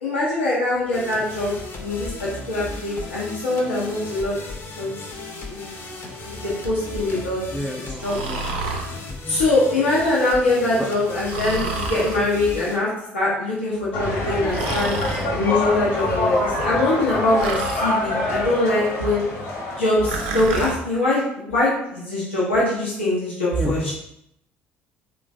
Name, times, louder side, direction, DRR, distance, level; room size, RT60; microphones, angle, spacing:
voice 1, 0.0-1.5 1.8-4.4 4.8-5.0 5.5-5.7 6.3-6.4 6.6-7.4 8.0-8.2 9.3-12.9 13.1-15.0 15.2-19.2 19.7-23.9, left 2 dB, 90° left, -7 dB, 0.6 m, -23 dB
sound 1, 0.9-12.8, left 2 dB, 45° left, 0.6 m, -36 dB
voice 2, 7.5-8.5 9.1-9.4 10.8-10.9 23.6-23.9, equal, ahead, 0 dB, 0.3 m, -31 dB
Breathing, 8.0-8.9 11.3-12.2 14.5-15.3 17.4-17.9 20.0-20.8, right 4 dB, 75° right, 0.4 m, -29 dB
sound 2, 13.9-20.8, left 2 dB, 65° left, 0.9 m, -26 dB
3.1 x 2.1 x 2.4 m, 0.77 s
hypercardioid pair, 55°, 6 cm